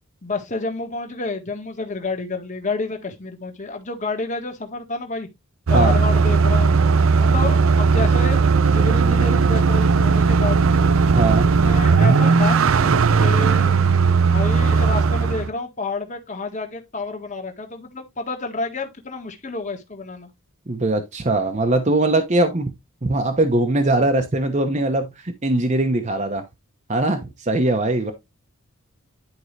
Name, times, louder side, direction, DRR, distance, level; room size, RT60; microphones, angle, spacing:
voice 1, 0.2-5.3 5.7-6.8 7.2-10.8 11.6-12.6 13.2-13.8 14.2-20.3, left 3 dB, 35° left, 1.6 m, -29 dB
sound 1, 5.7-15.5, right 5 dB, 65° right, 0.5 m, -17 dB
voice 2, 11.1-11.5 20.7-22.7 23.0-26.4 26.9-28.1, right 2 dB, 35° right, 0.9 m, -21 dB
10.5 x 4.7 x 3.2 m
head